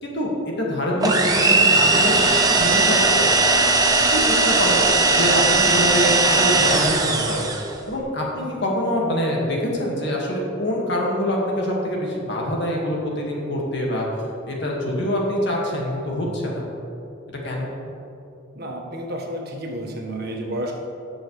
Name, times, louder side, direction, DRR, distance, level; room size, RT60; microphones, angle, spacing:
voice 1, 0.0-3.4 4.1-4.8 5.1-7.5 7.9-14.1 14.5-16.6 17.4-17.7, equal, 60° left, -2 dB, 2.0 m, -25 dB
sound 1, 1.0-7.7, right 3 dB, 20° right, 0.8 m, -18 dB
voice 2, 18.5-20.7, right 1 dB, 55° right, 0 dB, 1.4 m, -30 dB
18.0 x 6.4 x 3.3 m, 2.9 s
head